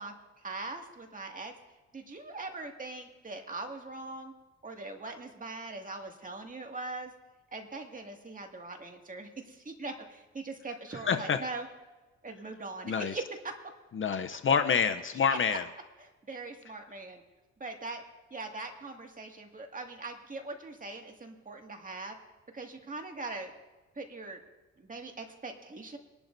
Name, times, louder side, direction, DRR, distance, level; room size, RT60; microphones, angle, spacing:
voice 1, 0.0-1.5 1.9-4.3 4.6-7.1 7.5-11.7 12.2-13.2 15.3-15.6 16.0-17.2 17.6-18.0 18.3-22.2 22.5-23.5 24.0-24.4 24.8-26.0, right 3 dB, 25° right, 3 dB, 2.1 m, -41 dB
voice 2, 11.1-11.4 12.9-13.1 13.9-15.6, left 6 dB, 40° left, 9 dB, 0.7 m, -27 dB
23.5 x 11.5 x 2.7 m, 1.2 s
cardioid pair, 90°, 30 cm